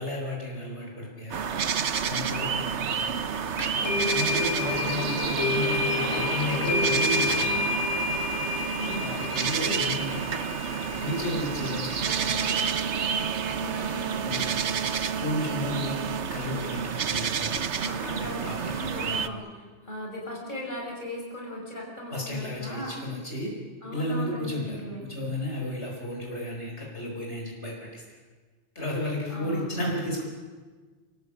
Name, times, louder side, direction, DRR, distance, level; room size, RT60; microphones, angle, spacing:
voice 1, 0.0-1.4 2.0-2.9 3.9-7.8 8.9-10.4 10.8-12.5 14.2-14.6 15.1-16.0 16.3-19.5 22.1-23.5 23.9-28.2 28.7-30.2, left 1 dB, 70° left, -1 dB, 4.9 m, -33 dB
sound 1, 1.3-19.3, right 7 dB, 75° right, 1.3 m, -30 dB
sound 2, 3.6-12.4, left 2 dB, 20° left, 3.9 m, -30 dB
voice 2, 3.7-4.4 4.9-7.0 8.8-9.1 13.6-14.4 17.8-19.5 19.8-23.0 23.8-25.0 29.3-29.8, equal, 40° left, -1 dB, 5.9 m, -38 dB
27.5 x 18.0 x 8.6 m, 1.4 s
omnidirectional pair, 1.2 m